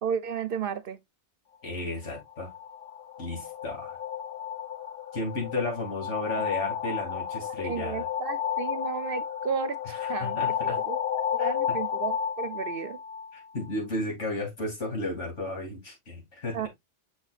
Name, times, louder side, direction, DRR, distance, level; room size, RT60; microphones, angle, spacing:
voice 1, 0.0-1.0 7.6-11.0 11.3-13.0 16.5-16.7, right 7 dB, 60° right, 0.7 m, -33 dB
voice 2, 1.6-2.5 3.2-4.0 5.1-8.1 10.0-10.8 11.4-11.5 13.3-16.6, left 2 dB, 85° left, 3.1 m, -33 dB
sound 1, 2.0-13.7, left 8 dB, 60° left, 0.7 m, -32 dB
6.5 x 6.3 x 2.4 m
omnidirectional pair, 1.2 m